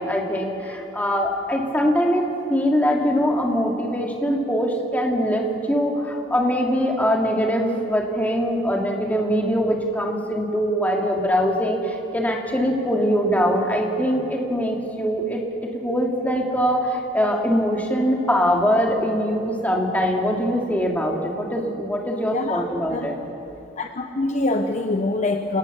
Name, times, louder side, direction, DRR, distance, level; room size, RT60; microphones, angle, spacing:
voice 1, 0.0-2.2 2.5-15.4 15.7-23.1, equal, 10° left, 0 dB, 2.6 m, -22 dB
voice 2, 23.8-25.6, left 2 dB, 45° left, 6 dB, 0.9 m, -24 dB
28.5 x 18.5 x 6.9 m, 2.7 s
head